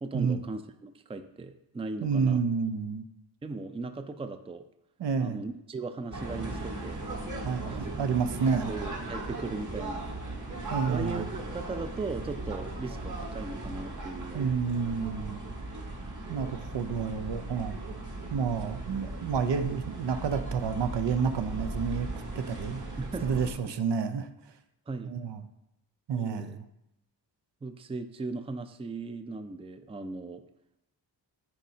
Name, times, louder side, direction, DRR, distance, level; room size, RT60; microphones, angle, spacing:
voice 1, 0.0-2.4 3.4-4.6 5.2-7.0 7.6-7.9 8.7-10.1 10.9-14.5 23.0-23.3 24.9-25.1 26.1-26.6 27.6-30.4, right 3 dB, 15° right, 9 dB, 0.4 m, -38 dB
voice 2, 2.0-3.0 5.0-5.4 7.4-8.7 10.7-11.3 14.3-15.4 16.3-17.8 18.3-22.1 22.4-22.8 23.2-24.3 25.0-25.4 26.1-26.6, right 6 dB, 65° right, 9 dB, 0.7 m, -29 dB
sound 1, 6.1-23.5, right 2 dB, 40° right, 1.5 m, -37 dB
10.5 x 4.2 x 2.8 m, 0.85 s
cardioid pair, 65°, 45 cm